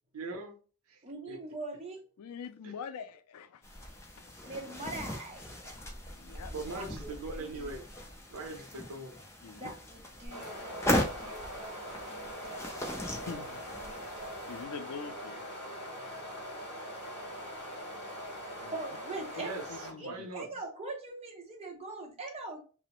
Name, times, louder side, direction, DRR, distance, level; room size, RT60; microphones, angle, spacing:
voice 1, 0.1-0.6 0.9-1.4 2.6-2.7 6.5-7.9 8.3-9.2 11.3-11.4 19.4-20.5, right 3 dB, 75° right, 0.6 m, -41 dB
voice 2, 1.0-2.0 4.4-5.7 6.7-7.1 7.4-7.8 9.5-13.4 13.8-14.6 15.8-16.7 17.5-19.5 20.0-22.6, right 2 dB, 30° right, 0.7 m, -44 dB
voice 3, 2.2-3.6 4.2-4.3 6.1-6.5 9.4-9.7 13.2-13.6 14.5-15.4 18.6-18.7 19.7-20.3, left 6 dB, 85° left, 0.4 m, -44 dB
sound 1, 3.6-14.6, left 1 dB, 10° left, 0.4 m, -38 dB
sound 2, 10.2-19.9, equal, 50° left, 1.2 m, -42 dB
2.9 x 2.0 x 2.9 m
head